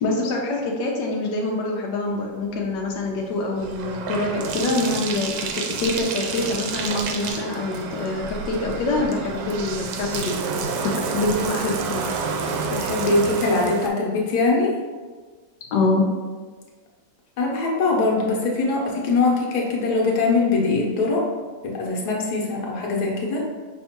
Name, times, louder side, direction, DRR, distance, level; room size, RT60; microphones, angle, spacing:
voice 1, 0.0-10.4 10.7-12.1 15.7-16.0, left 2 dB, 90° left, -1 dB, 1.3 m, -25 dB
Bathtub (filling or washing), 2.5-13.9, right 4 dB, 80° right, 1.2 m, -29 dB
voice 2, 12.7-14.7 17.4-21.2 21.6-23.5, left 3 dB, 70° left, -2 dB, 1.5 m, -22 dB
5.4 x 3.4 x 2.9 m, 1.4 s
omnidirectional pair, 1.8 m